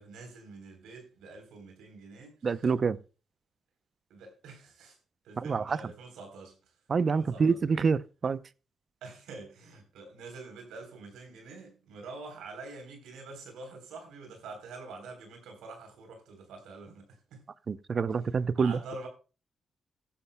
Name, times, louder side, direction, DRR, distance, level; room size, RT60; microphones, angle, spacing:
voice 1, 0.0-2.4 2.6-2.7 4.1-5.0 5.2-6.6 7.1-7.6 9.0-17.4 18.6-19.1, right 3 dB, 85° right, 3.6 m, -46 dB
voice 2, 2.4-3.0 5.4-5.8 6.9-8.4 17.7-18.8, right 5 dB, 55° right, 0.6 m, -27 dB
15.0 x 11.5 x 2.2 m
supercardioid pair, 50°, 0 cm